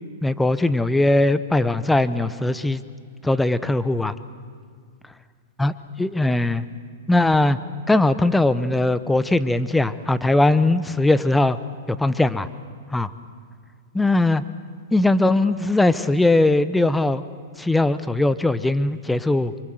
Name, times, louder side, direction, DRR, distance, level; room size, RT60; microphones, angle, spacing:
voice 1, 0.2-2.8 3.2-4.1 5.6-5.7 6.0-6.6 7.1-7.6 7.9-11.6 11.9-12.5 12.9-13.1 13.9-14.4 14.9-17.2 17.6-19.5, left 2 dB, 5° left, 14 dB, 0.9 m, -20 dB
27.0 x 24.0 x 7.9 m, 2.1 s
hypercardioid pair, 125°, 0 cm